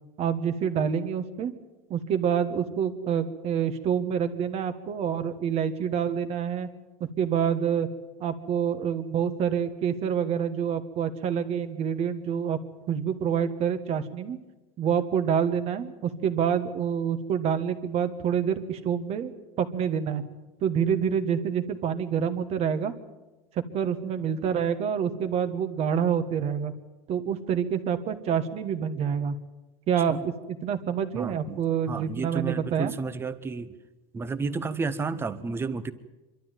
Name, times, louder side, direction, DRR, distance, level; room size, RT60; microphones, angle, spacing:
voice 1, 0.2-1.5 1.9-6.7 7.2-7.9 8.2-12.6 12.9-14.4 14.8-19.3 19.6-20.2 20.6-22.9 23.7-26.7 27.1-29.4 29.9-32.9, right 8 dB, 40° right, 9 dB, 1.5 m, -27 dB
voice 2, 31.1-33.7 34.1-35.9, right 4 dB, 15° right, 13 dB, 0.9 m, -32 dB
25.5 x 12.5 x 9.1 m, 1.1 s
supercardioid pair, 150°, 16 cm